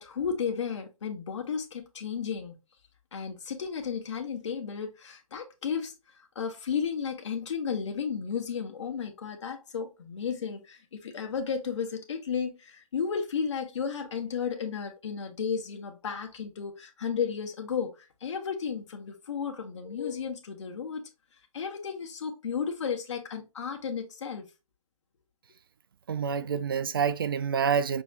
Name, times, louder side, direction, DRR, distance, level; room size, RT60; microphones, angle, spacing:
voice 1, 0.0-2.5 3.1-5.9 6.3-17.9 18.2-21.0 21.5-24.4, left 6 dB, 55° left, 1.3 m, -33 dB
voice 2, 26.1-28.0, right 7 dB, 40° right, 0.4 m, -27 dB
6.1 x 3.3 x 2.5 m
hypercardioid pair, 160°, 18 cm